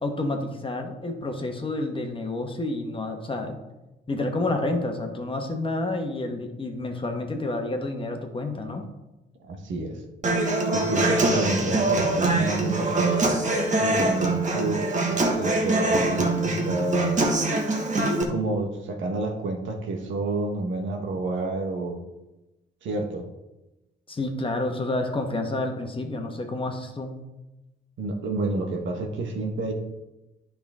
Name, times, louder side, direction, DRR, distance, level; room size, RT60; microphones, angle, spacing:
voice 1, 0.0-3.6 4.1-8.8 11.2-11.7 24.1-27.2, left 2 dB, 25° left, 4 dB, 1.4 m, -29 dB
voice 2, 9.4-10.0 10.7-13.3 13.8-14.8 15.4-17.1 18.3-22.0 22.8-23.3 28.0-29.7, right 2 dB, 75° right, 3 dB, 1.5 m, -29 dB
Human voice / Acoustic guitar, 10.2-18.2, right 2 dB, 40° right, 1.6 m, -24 dB
10.0 x 5.8 x 3.7 m, 1.0 s
cardioid pair, 90°, 20 cm